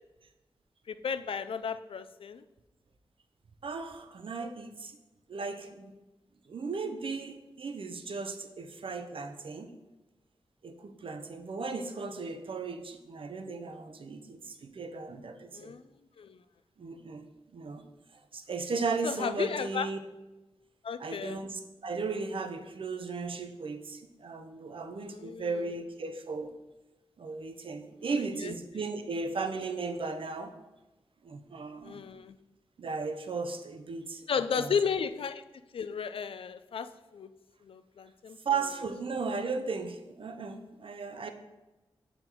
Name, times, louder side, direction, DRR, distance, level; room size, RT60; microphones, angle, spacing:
voice 1, 0.9-2.4 15.5-15.8 16.2-16.4 19.0-19.9 20.8-21.4 25.0-25.5 28.4-28.5 31.8-32.4 34.3-35.4 35.7-37.3 37.6-38.4, left 6 dB, 70° left, 12 dB, 0.3 m, -34 dB
voice 2, 3.6-5.0 5.3-5.9 6.5-9.7 10.6-15.7 16.8-17.3 17.5-17.8 18.3-20.0 21.0-26.5 27.2-30.6 31.2-32.0 32.8-34.8 38.4-41.3, right 4 dB, 65° right, 7 dB, 0.6 m, -36 dB
6.8 x 3.9 x 4.5 m, 1.1 s
wide cardioid pair, 80°, 10 cm